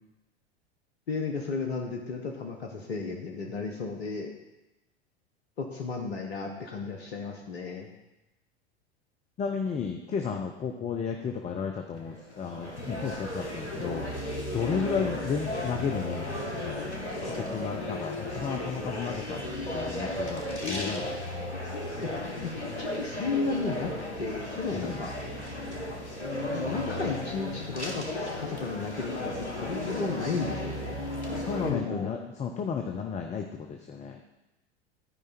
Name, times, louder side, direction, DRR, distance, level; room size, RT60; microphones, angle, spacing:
voice 1, 1.1-4.3 5.6-7.9 14.7-14.8 22.0-22.1 22.4-22.5 22.8-23.9 24.2-25.1 26.2-31.0 31.6-32.1, left 4 dB, 70° left, 1 dB, 1.4 m, -33 dB
voice 2, 9.4-14.0 14.5-16.9 17.2-19.4 19.7-21.0 24.7-25.0 31.5-34.2, left 6 dB, 20° left, 3 dB, 0.8 m, -33 dB
sound 1, 12.0-31.7, left 1 dB, 90° left, 1.5 m, -35 dB
13.0 x 5.0 x 4.4 m, 0.97 s
figure-of-eight pair, 85°, 33 cm